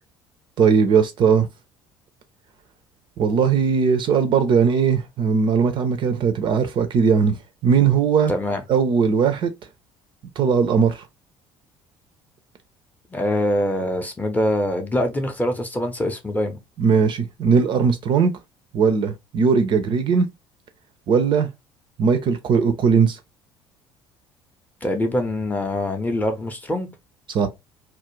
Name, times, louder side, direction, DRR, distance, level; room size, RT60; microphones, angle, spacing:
voice 1, 0.6-1.5 3.2-7.4 7.6-8.3 8.7-9.5 10.4-11.0 16.8-18.3 18.7-20.3 21.1-21.5 22.0-23.2 27.3-27.5, right 6 dB, 40° right, 0.4 m, -19 dB
voice 2, 8.3-8.6 13.1-16.6 24.8-26.9, left 1 dB, 10° left, 0.6 m, -24 dB
2.3 x 2.1 x 2.9 m
figure-of-eight pair, 55°, 13 cm